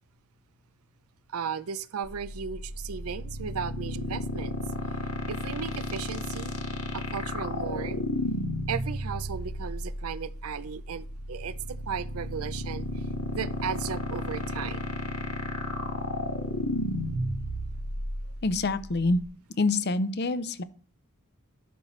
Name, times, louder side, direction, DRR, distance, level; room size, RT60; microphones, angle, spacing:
voice 1, 1.3-4.6 5.3-6.5 6.9-8.0 8.7-11.5 11.9-12.9 13.3-14.8, right 7 dB, 85° right, 16 dB, 0.5 m, -35 dB
sound 1, 2.0-19.2, left 1 dB, 85° left, 1.4 m, -33 dB
voice 2, 18.4-19.2 19.6-20.6, left 3 dB, 50° left, 14 dB, 0.6 m, -26 dB
11.0 x 6.4 x 3.2 m, 0.42 s
head